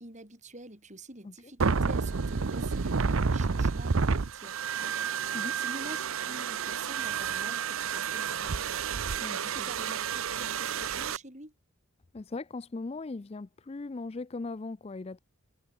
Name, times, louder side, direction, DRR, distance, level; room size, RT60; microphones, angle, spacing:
voice 1, 0.0-8.8 9.4-11.5, right 2 dB, 30° right, 3.7 m, -47 dB
sound 1, 1.6-11.2, right 5 dB, 65° right, 0.7 m, -30 dB
voice 2, 9.2-9.7 12.1-15.2, left 3 dB, 25° left, 0.4 m, -39 dB
head